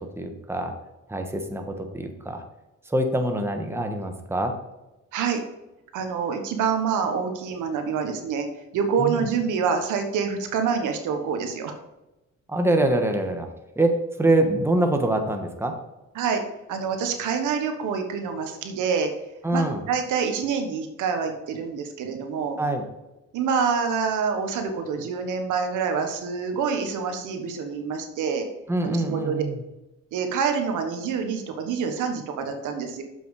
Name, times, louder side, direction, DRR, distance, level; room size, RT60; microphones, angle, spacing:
voice 1, 0.2-0.7 1.1-2.4 2.9-4.6 9.0-9.3 12.5-13.5 13.8-15.7 19.4-19.8 22.6-22.8 28.7-29.5, right 1 dB, 10° right, 4 dB, 1.2 m, -24 dB
voice 2, 5.9-8.5 8.7-11.7 16.1-16.4 16.7-19.1 19.5-22.6 23.3-28.5 28.8-29.4 30.1-33.0, right 6 dB, 85° right, 5 dB, 1.3 m, -26 dB
7.2 x 6.0 x 4.8 m, 0.98 s
cardioid pair, 90°, 30 cm